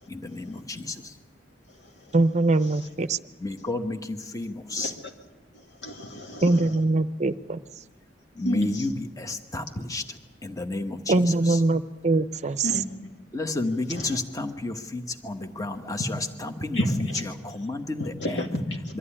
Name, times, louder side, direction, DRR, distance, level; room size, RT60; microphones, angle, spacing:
voice 1, 0.1-1.2 3.4-4.9 8.3-11.6 13.3-18.4 18.9-19.0, left 2 dB, 20° left, 7 dB, 1.2 m, -32 dB
voice 2, 2.1-3.2 6.4-7.6 11.1-12.7, right 2 dB, 40° right, 13 dB, 0.6 m, -22 dB
voice 3, 5.8-6.7 8.4-8.9 12.6-12.9 13.9-14.2 16.7-17.2 18.0-18.9, equal, 85° left, 2 dB, 2.4 m, -30 dB
23.5 x 14.0 x 10.0 m, 1.2 s
head